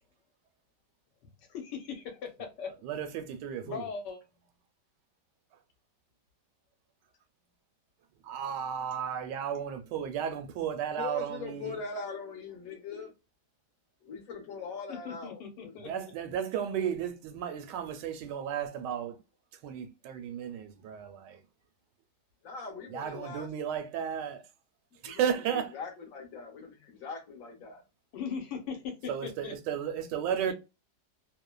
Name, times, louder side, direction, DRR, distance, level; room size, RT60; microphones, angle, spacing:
voice 1, 1.4-2.9 3.6-4.2 14.9-16.1 28.1-29.5 30.4-30.5, left 6 dB, 80° left, 1.4 m, -39 dB
voice 2, 2.8-3.9 8.2-11.8 15.8-19.2 19.6-21.4 22.9-24.5 25.0-25.7 29.1-30.5, right 8 dB, 85° right, 1.2 m, -34 dB
voice 3, 10.9-13.1 14.0-15.8 22.4-23.5 25.0-25.2 25.7-27.8, left 4 dB, 60° left, 1.1 m, -41 dB
3.1 x 2.1 x 2.2 m
omnidirectional pair, 1.8 m